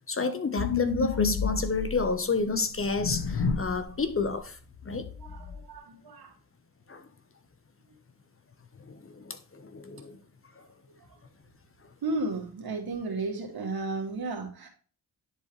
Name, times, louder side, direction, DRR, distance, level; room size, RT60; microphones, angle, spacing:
voice 1, 0.1-4.6 4.8-5.1 6.9-7.1 8.9-10.2, left 4 dB, 35° left, 1.1 m, -30 dB
sound 1, 0.6-2.1 2.8-3.8 4.1-4.3 4.7-5.6, left 6 dB, 90° left, 1.1 m, -30 dB
voice 2, 5.2-6.3 12.0-14.7, right 3 dB, 75° right, 2.4 m, -33 dB
10.5 x 4.6 x 3.2 m
cardioid pair, 95°, 37 cm